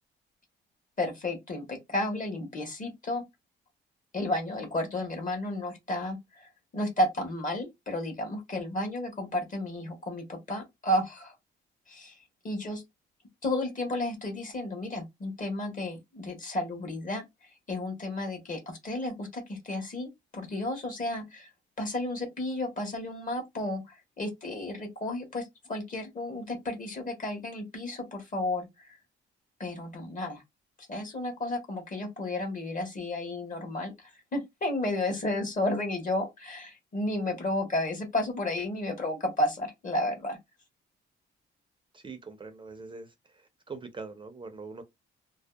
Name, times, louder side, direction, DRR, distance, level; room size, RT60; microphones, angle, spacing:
voice 1, 1.0-3.2 4.1-11.3 11.9-12.2 12.4-12.8 13.4-17.2 17.7-21.5 21.8-29.0 29.6-30.4 30.9-40.4, left 1 dB, 40° left, 1.1 m, -32 dB
voice 2, 41.9-44.8, right 4 dB, 25° right, 0.4 m, -43 dB
2.6 x 2.1 x 2.3 m
cardioid pair, 90°, 20 cm